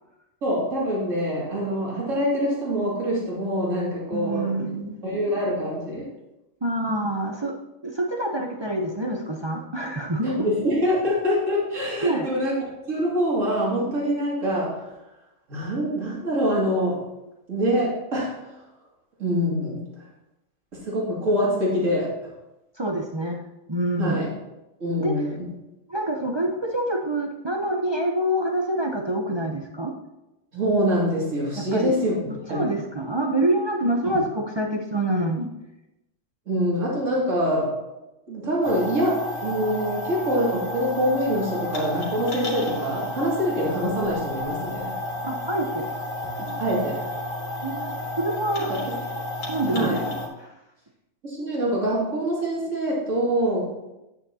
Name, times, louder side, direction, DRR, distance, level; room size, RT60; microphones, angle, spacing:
voice 1, 0.4-4.5 5.0-6.1 10.2-12.6 12.9-14.9 15.5-17.0 17.5-18.5 19.2-19.9 20.7-22.2 24.0-24.3 24.8-25.5 30.5-32.1 32.5-32.7 34.0-34.2 36.5-37.8 38.3-44.9 46.6-47.0 48.7-49.0 49.7-50.0 51.2-53.7, equal, 70° right, -5 dB, 2.7 m, -25 dB
voice 2, 4.1-5.0 6.6-7.6 7.8-10.5 12.0-12.3 22.8-23.4 23.7-24.3 25.0-25.1 25.9-29.9 31.6-31.9 32.5-35.5 45.2-45.9 47.6-48.8 49.5-50.0 50.4-50.5, right 1 dB, 35° right, 1 dB, 0.4 m, -26 dB
sound 1, 38.6-50.3, left 1 dB, 75° left, 2.0 m, -31 dB
9.4 x 8.2 x 2.8 m, 0.93 s
omnidirectional pair, 1.4 m